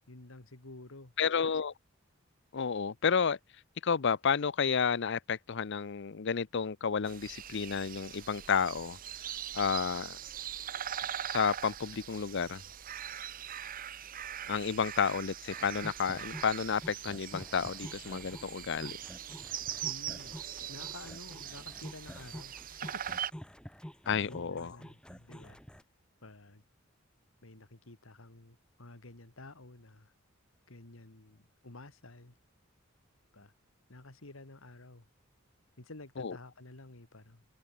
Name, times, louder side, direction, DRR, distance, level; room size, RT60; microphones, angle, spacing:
voice 1, 0.1-1.1 19.8-20.4 20.7-23.2 24.2-25.6 26.2-26.6 27.4-30.1 30.7-32.4 33.3-33.5 33.9-35.1 35.8-37.4, left 2 dB, 85° left, 2.3 m, -51 dB
voice 2, 1.2-1.7 2.5-3.4 3.8-9.0 9.5-10.2 11.3-12.6 14.5-19.0 24.1-24.8 36.2-36.4, left 6 dB, 60° left, 0.6 m, -31 dB
sound 1, 7.1-23.3, right 10 dB, 45° right, 0.8 m, -41 dB
sound 2, 15.5-25.8, equal, 5° left, 1.7 m, -49 dB
head